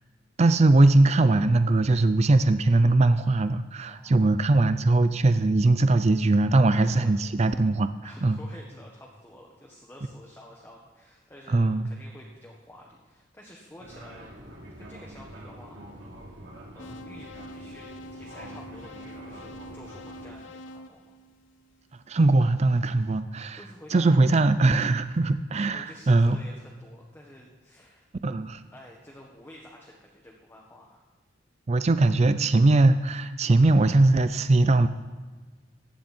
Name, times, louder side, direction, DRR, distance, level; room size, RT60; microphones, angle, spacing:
voice 1, 0.4-7.9 8.2-8.4 11.5-11.9 22.1-23.6 23.9-26.4 28.2-28.6 31.7-34.9, right 2 dB, 35° right, 11 dB, 0.5 m, -21 dB
voice 2, 3.9-4.4 6.6-7.3 8.0-14.3 14.8-16.1 16.7-21.2 23.5-24.2 25.7-28.1 28.7-31.1, left 1 dB, 10° left, -2 dB, 1.6 m, -50 dB
Fixed-wing aircraft airplane, 13.8-20.3, right 1 dB, 80° right, 3.4 m, -45 dB
sound 1, 16.8-21.9, left 1 dB, 85° left, 0.7 m, -45 dB
15.5 x 10.0 x 4.5 m, 1.4 s
head